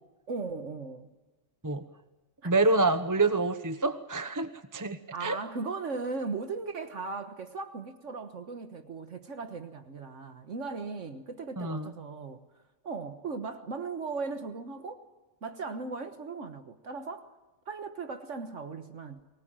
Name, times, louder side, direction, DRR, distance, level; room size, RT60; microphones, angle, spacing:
voice 1, 0.3-1.1 2.4-2.5 5.1-12.4 12.8-15.0 15.4-17.3 17.7-19.2, right 4 dB, 65° right, 8 dB, 1.6 m, -37 dB
voice 2, 2.4-5.4 11.6-11.9, right 3 dB, 15° right, 10 dB, 0.8 m, -27 dB
24.0 x 20.0 x 9.0 m, 1.2 s
omnidirectional pair, 1.4 m